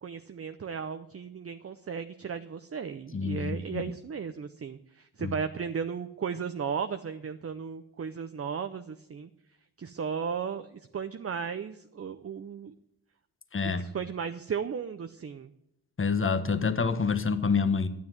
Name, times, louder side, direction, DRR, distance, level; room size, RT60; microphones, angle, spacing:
voice 1, 0.0-9.3 9.8-12.7 13.6-15.5, right 6 dB, 35° right, 9 dB, 0.7 m, -35 dB
voice 2, 3.1-3.8 5.2-5.3 13.5-13.8 16.0-17.9, left 5 dB, 30° left, 10 dB, 1.2 m, -27 dB
12.5 x 9.4 x 9.3 m, 0.82 s
wide cardioid pair, 135°, 39 cm